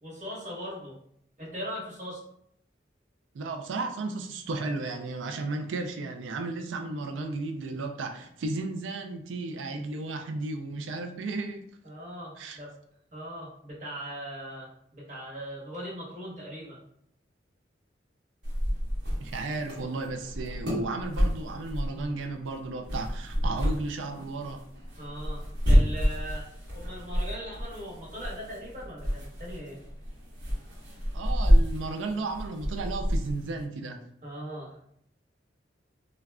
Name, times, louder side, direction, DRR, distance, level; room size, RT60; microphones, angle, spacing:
voice 1, 0.0-0.9 1.4-2.2 11.8-12.7 13.1-16.8 25.0-29.8 34.2-34.8, equal, 40° right, -5 dB, 1.1 m, -40 dB
voice 2, 3.3-11.6 12.4-12.6 19.2-24.6 31.1-34.0, right 3 dB, 90° right, 5 dB, 0.4 m, -34 dB
sound 1, 18.4-33.6, equal, 65° right, 1.0 m, -29 dB
3.5 x 2.2 x 2.2 m, 0.71 s
head